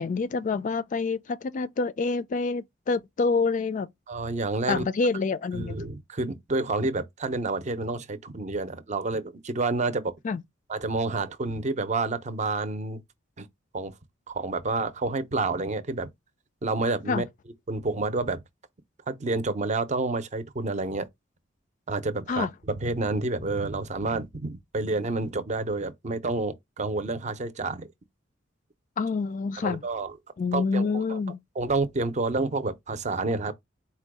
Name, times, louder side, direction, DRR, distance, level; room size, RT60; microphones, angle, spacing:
voice 1, 0.0-3.9 4.7-5.8 10.2-10.4 17.1-17.2 22.3-22.5 29.0-29.8 30.4-31.4, left 4 dB, 40° left, 0.3 m, -27 dB
voice 2, 4.1-4.8 5.5-10.1 10.7-13.0 13.4-13.5 13.7-13.9 14.3-16.1 16.6-17.2 17.7-18.4 19.1-21.1 21.9-27.9 29.6-30.1 30.5-31.2 31.6-33.5, right 3 dB, 40° right, 0.6 m, -29 dB
4.4 x 2.2 x 4.7 m
head